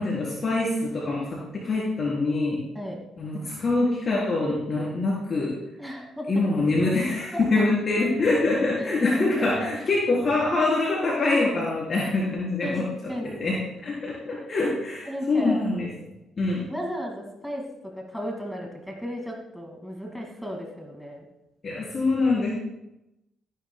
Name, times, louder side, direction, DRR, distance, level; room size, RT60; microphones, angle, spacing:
voice 1, 0.0-2.6 3.2-5.5 6.3-12.9 13.4-15.9 16.4-16.6 21.6-22.5, left 2 dB, 40° left, -6 dB, 3.9 m, -24 dB
voice 2, 5.8-6.3 8.8-9.1 9.6-9.7 12.6-12.8 13.1-13.4 15.1-15.6 16.7-17.6 17.9-21.3, equal, ahead, 0 dB, 2.2 m, -34 dB
15.5 x 10.0 x 2.3 m, 0.90 s
cardioid pair, 90°, 0 cm